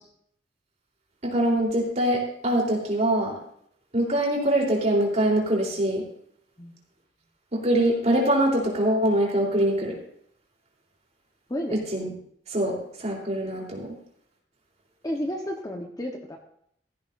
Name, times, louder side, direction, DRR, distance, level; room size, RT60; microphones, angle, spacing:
voice 1, 1.2-3.4 3.9-6.0 7.5-10.0 11.7-12.1 12.5-14.0, right 1 dB, 40° right, -2 dB, 3.7 m, -24 dB
voice 2, 11.5-11.8 15.0-16.4, equal, 20° left, 2 dB, 1.2 m, -31 dB
15.5 x 14.5 x 2.7 m, 0.68 s
head